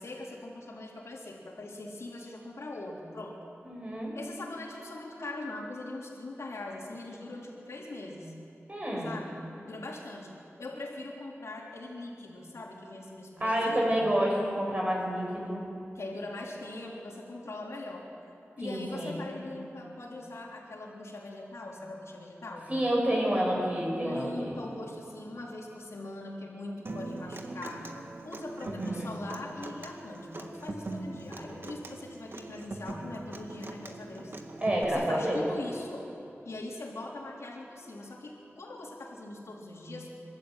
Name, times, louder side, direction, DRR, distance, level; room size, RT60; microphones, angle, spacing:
voice 1, 0.0-3.4 4.1-8.3 9.0-10.3 10.6-14.1 15.9-18.1 18.6-22.8 23.9-27.9 28.2-34.3 34.9-36.1 36.4-40.1, left 2 dB, 85° left, -2 dB, 3.9 m, -41 dB
voice 2, 3.6-4.1 8.7-9.1 13.4-15.6 18.6-19.1 22.7-24.6 28.6-29.1 34.6-35.4, equal, 30° right, -2 dB, 5.9 m, -29 dB
Human voice / Acoustic guitar, 26.8-34.8, right 2 dB, 50° right, 1.9 m, -41 dB
29.0 x 13.0 x 9.1 m, 2.7 s
wide cardioid pair, 90°, 5 cm